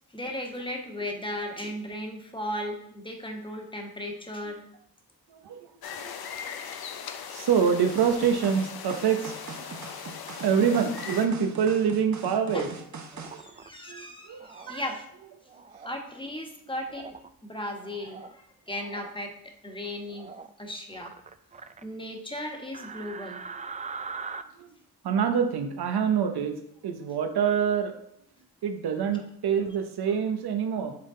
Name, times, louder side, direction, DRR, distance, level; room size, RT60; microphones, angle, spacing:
voice 1, 0.1-4.6 12.5-12.7 13.4-15.1 15.8-17.2 17.4-19.3 19.6-20.3 20.6-21.1 21.8-23.4 29.1-29.2, left 1 dB, 15° left, 2 dB, 1.3 m, -36 dB
sound 1, 5.8-11.3, left 7 dB, 75° left, 0.7 m, -39 dB
voice 2, 7.3-9.7 10.4-12.7 13.3-13.4 13.9-14.8 24.6-24.7 25.0-26.6 26.8-27.9 28.6-31.0, right 7 dB, 80° right, 6 dB, 0.9 m, -26 dB
sound 2, 7.9-13.4, right 4 dB, 50° right, 1.0 m, -41 dB
sound 3, 13.1-13.7 14.4-14.7 15.5-16.0 16.9-17.3 17.8-18.3 18.7-19.1 20.1-20.5 20.9-21.8 22.7-24.4, right 5 dB, 20° right, 0.4 m, -41 dB
7.7 x 3.7 x 3.8 m, 0.71 s
cardioid pair, 65°, 38 cm